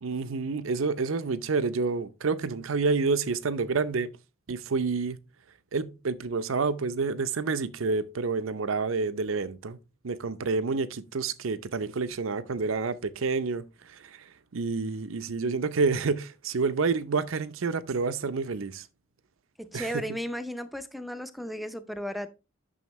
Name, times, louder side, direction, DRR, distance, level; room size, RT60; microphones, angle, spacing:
voice 1, 0.0-4.1 4.5-5.2 5.7-9.8 10.0-13.6 13.9-14.2 14.5-18.9 19.7-20.0, right 4 dB, 75° right, 0.6 m, -28 dB
voice 2, 19.6-22.3, equal, ahead, 0.6 m, -35 dB
9.3 x 6.3 x 3.1 m
head